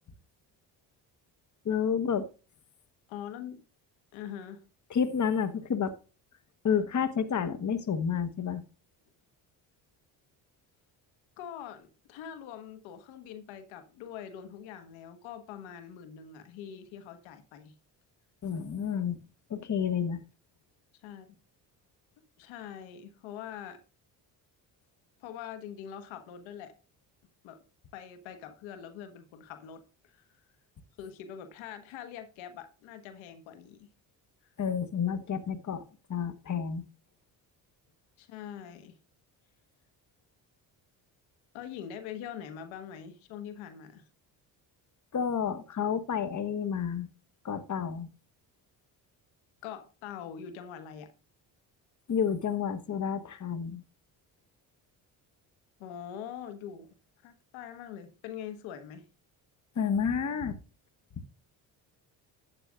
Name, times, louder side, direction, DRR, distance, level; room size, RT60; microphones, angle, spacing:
voice 1, 1.6-2.3 4.9-5.9 6.6-8.6 18.4-19.2 19.5-20.2 34.6-35.8 36.1-36.8 45.1-47.1 47.4-48.1 52.1-53.8 59.8-60.6, left 7 dB, 40° left, 1.3 m, -30 dB
voice 2, 3.1-3.6 4.1-4.6 11.4-17.7 21.0-21.4 22.4-23.8 25.2-26.7 27.4-27.6 27.9-30.3 31.0-33.9 38.2-39.0 41.5-44.1 49.6-51.1 55.8-56.9 57.2-59.1, left 9 dB, 80° left, 1.5 m, -43 dB
12.0 x 8.9 x 2.5 m
supercardioid pair, 65°, 46 cm